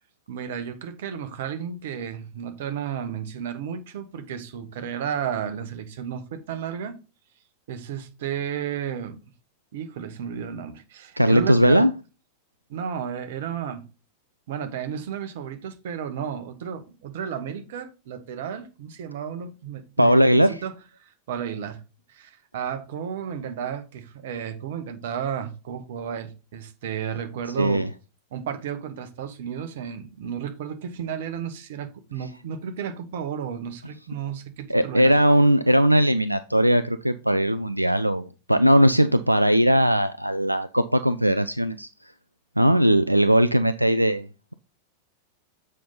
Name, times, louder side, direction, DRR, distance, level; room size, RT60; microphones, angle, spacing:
voice 1, 0.3-7.0 7.7-9.2 9.7-11.9 12.7-13.8 14.5-20.7 21.0-21.8 22.1-27.9 28.3-35.1, right 8 dB, 55° right, 1.1 m, -33 dB
voice 2, 11.2-11.9 20.0-20.6 27.6-27.9 34.7-42.1 42.6-44.3, equal, 90° right, 0.3 m, -19 dB
7.4 x 5.4 x 3.9 m
figure-of-eight pair, 90°, 0 cm